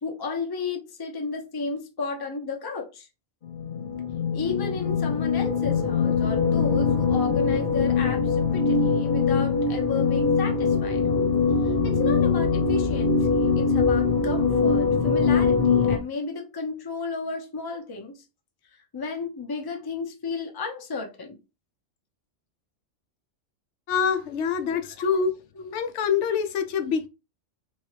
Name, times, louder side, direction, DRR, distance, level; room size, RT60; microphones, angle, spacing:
voice 1, 0.0-3.1 4.3-11.0 11.6-18.2 18.7-21.4 24.9-25.1 25.5-25.7, left 4 dB, 25° left, 0.6 m, -33 dB
sound 1, 3.4-16.0, left 5 dB, 45° left, 1.0 m, -22 dB
voice 2, 23.9-25.3 25.7-27.1, left 6 dB, 70° left, 0.9 m, -25 dB
3.6 x 3.2 x 3.2 m
omnidirectional pair, 1.3 m